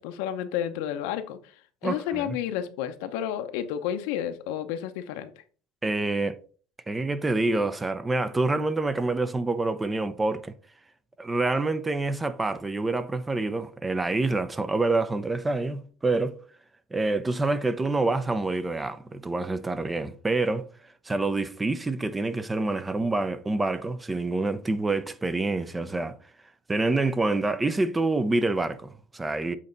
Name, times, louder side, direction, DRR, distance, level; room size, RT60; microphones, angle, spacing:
voice 1, 0.0-1.4 1.8-5.3, left 10 dB, 85° left, 0.8 m, -31 dB
voice 2, 1.8-2.4 5.8-6.4 6.9-10.5 11.2-16.4 16.9-20.7 21.1-26.1 26.7-29.6, right 2 dB, 15° right, 0.5 m, -27 dB
7.5 x 4.2 x 3.9 m
cardioid pair, 120°, 0 cm